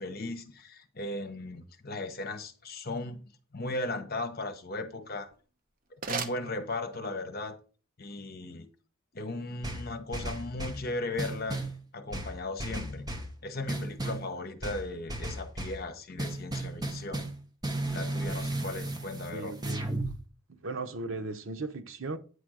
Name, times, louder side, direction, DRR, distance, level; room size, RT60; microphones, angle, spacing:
voice 1, 0.0-3.2 3.5-5.3 6.1-7.6 8.0-8.7 9.1-11.6 11.9-13.1 13.4-17.2 17.9-19.6, left 2 dB, 50° left, 1.0 m, -37 dB
sound 1, 5.1-7.2, right 5 dB, 45° right, 0.9 m, -39 dB
sound 2, 9.6-10.8 11.2-11.8 12.1-13.3 13.7-14.3 14.6-15.8 16.2-17.4 17.6-20.1, right 1 dB, 20° right, 1.2 m, -34 dB
voice 2, 19.3-19.8 20.6-22.2, right 3 dB, 85° right, 0.9 m, -37 dB
9.4 x 3.4 x 6.3 m
head